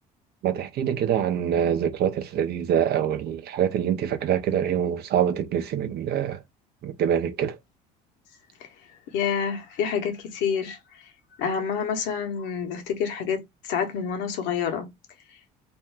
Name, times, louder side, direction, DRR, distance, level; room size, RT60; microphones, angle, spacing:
voice 1, 0.4-6.4 6.8-7.6, right 9 dB, 55° right, 0.7 m, -25 dB
voice 2, 9.1-10.8 11.4-14.9, left 7 dB, 70° left, 1.0 m, -28 dB
2.6 x 2.2 x 3.3 m
hypercardioid pair, 75°, 20 cm